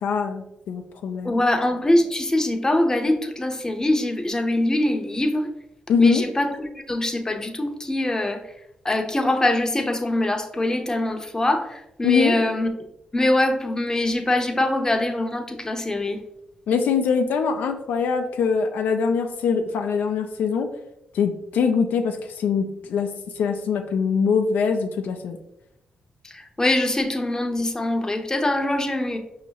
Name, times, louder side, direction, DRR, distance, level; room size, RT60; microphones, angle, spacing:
voice 1, 0.0-1.4 5.9-6.2 12.0-12.3 16.7-20.7 21.1-25.4, left 5 dB, 85° left, 5 dB, 0.4 m, -23 dB
voice 2, 1.2-5.5 6.0-8.4 8.8-12.7 13.1-16.2 26.2-29.2, left 1 dB, 20° left, 4 dB, 0.6 m, -23 dB
5.2 x 2.8 x 2.8 m, 0.85 s
cardioid pair, 65°, 3 cm